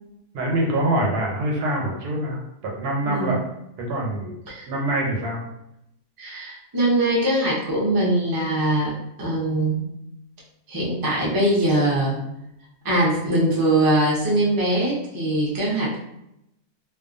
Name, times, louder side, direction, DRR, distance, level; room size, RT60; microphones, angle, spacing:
voice 1, 0.3-3.4 3.8-4.4 4.7-5.4, right 1 dB, 85° right, 0 dB, 1.2 m, -25 dB
voice 2, 6.2-9.9 10.7-12.2 12.8-15.9, right 1 dB, 30° right, -5 dB, 0.4 m, -22 dB
2.5 x 2.3 x 2.5 m, 0.84 s
omnidirectional pair, 1.6 m